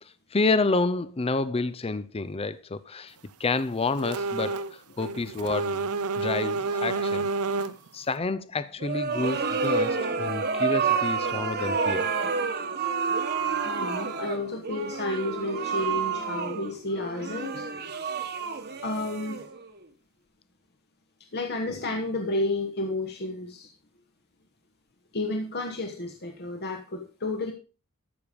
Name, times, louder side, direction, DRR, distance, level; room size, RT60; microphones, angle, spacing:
voice 1, 0.0-5.9 6.2-7.3 7.9-12.1, left 3 dB, 25° left, 0.5 m, -29 dB
sound 1, 4.0-4.7 5.0-7.9, right 3 dB, 80° right, 0.8 m, -29 dB
sound 2, 8.8-19.8, right 5 dB, 45° right, 1.3 m, -29 dB
voice 2, 13.4-17.7 18.8-19.4 21.3-23.7 25.1-27.5, left 2 dB, 50° left, 1.3 m, -31 dB
13.5 x 6.8 x 5.2 m
head